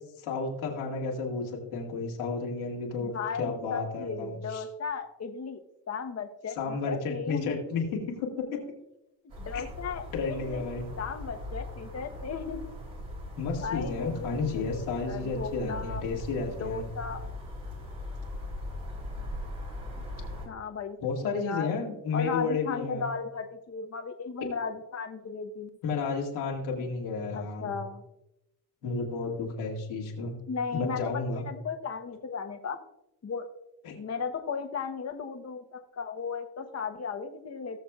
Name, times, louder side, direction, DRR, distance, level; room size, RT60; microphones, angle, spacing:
voice 1, 0.2-4.6 6.6-8.6 9.5-9.6 10.1-10.9 13.4-16.9 21.0-23.1 25.8-27.7 28.8-30.3 30.7-31.4 33.8-34.0, left 4 dB, 85° left, -1 dB, 2.2 m, -32 dB
voice 2, 3.0-5.6 5.9-7.8 9.4-10.6 11.0-12.8 13.6-14.6 15.1-16.0 16.6-17.2 20.5-21.7 22.1-25.7 27.3-28.0 30.5-32.8 33.2-33.5 33.9-37.8, left 5 dB, 35° left, 5 dB, 1.1 m, -36 dB
sound 1, 9.3-20.5, left 1 dB, 75° right, 3.3 m, -40 dB
18.0 x 6.8 x 2.4 m, 0.88 s
hypercardioid pair, 50°, 46 cm